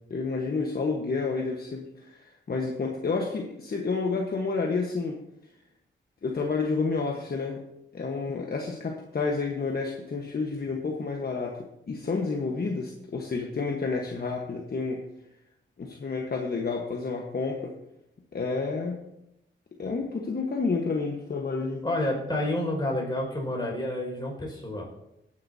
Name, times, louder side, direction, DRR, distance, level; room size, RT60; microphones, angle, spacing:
voice 1, 0.1-5.2 6.2-7.6 7.9-15.0 15.8-17.7 18.3-19.0 19.8-21.8, left 4 dB, 50° left, 0 dB, 1.3 m, -30 dB
voice 2, 21.8-24.9, left 1 dB, 20° left, -2 dB, 5.3 m, -29 dB
18.0 x 9.7 x 2.8 m, 0.85 s
wide cardioid pair, 100°, 20 cm